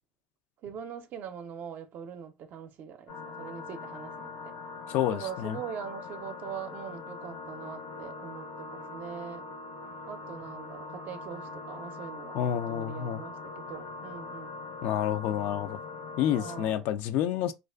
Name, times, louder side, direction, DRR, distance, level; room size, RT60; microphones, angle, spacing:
voice 1, 0.6-4.3 5.1-9.5 10.1-14.6 16.4-16.8, right 8 dB, 55° right, 0.5 m, -42 dB
sound 1, 3.1-16.6, left 3 dB, 85° left, 0.9 m, -42 dB
voice 2, 4.9-5.6 12.3-13.2 14.8-15.8 16.2-17.5, left 10 dB, 65° left, 0.4 m, -29 dB
2.4 x 2.3 x 2.3 m
hypercardioid pair, 75°, 4 cm